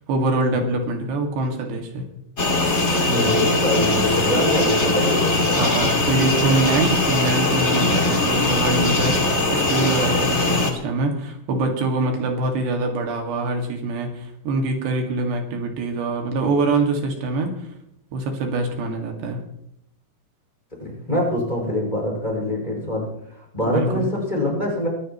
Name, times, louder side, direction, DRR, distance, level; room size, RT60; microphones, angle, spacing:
voice 1, 0.0-2.1 5.5-9.2 9.5-17.5 18.1-19.4 23.7-24.1, right 2 dB, 80° right, 3 dB, 4.3 m, -24 dB
sound 1, 2.4-10.7, left 2 dB, 30° left, 1.3 m, -20 dB
voice 2, 3.0-5.6 20.8-24.9, left 1 dB, 10° left, -1 dB, 5.9 m, -25 dB
23.5 x 15.0 x 3.1 m, 0.76 s
omnidirectional pair, 4.9 m